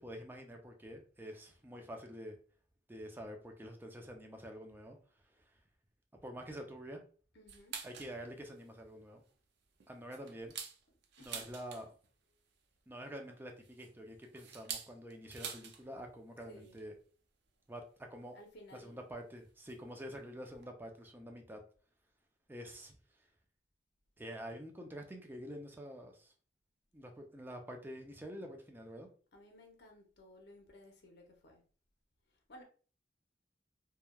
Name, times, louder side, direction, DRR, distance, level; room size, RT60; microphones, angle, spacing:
voice 1, 0.0-2.4 2.9-5.0 6.2-7.0 7.8-9.2 9.9-10.5 11.2-11.9 12.9-16.9 17.7-17.8 18.1-18.4 18.7-21.6 22.5-23.0 24.2-26.3 26.9-29.1, equal, 10° right, 0.5 m, -47 dB
voice 2, 7.3-7.8 10.2-10.3 11.2-11.5 16.4-16.8 18.3-19.0 29.3-31.6 32.5-32.6, left 1 dB, 65° left, 0.7 m, -57 dB
sound 1, 7.5-8.2 8.6-8.7 9.1-9.3 9.8-12.1 13.3-15.8 16.1-16.2 16.5-16.8 17.8-17.9 18.7-18.8 19.7-19.9 20.2-20.3 20.5-20.6, right 7 dB, 65° right, 0.5 m, -46 dB
3.1 x 2.2 x 2.3 m
head